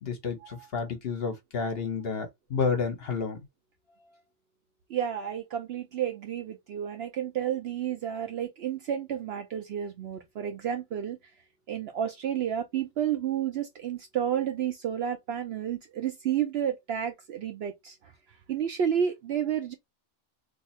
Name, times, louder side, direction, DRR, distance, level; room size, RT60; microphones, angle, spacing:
voice 1, 0.0-3.4, left 5 dB, 50° left, 1.0 m, -30 dB
voice 2, 4.9-11.2 11.7-18.0 18.5-19.7, right 9 dB, 65° right, 0.7 m, -31 dB
2.7 x 2.4 x 4.2 m
omnidirectional pair, 1.4 m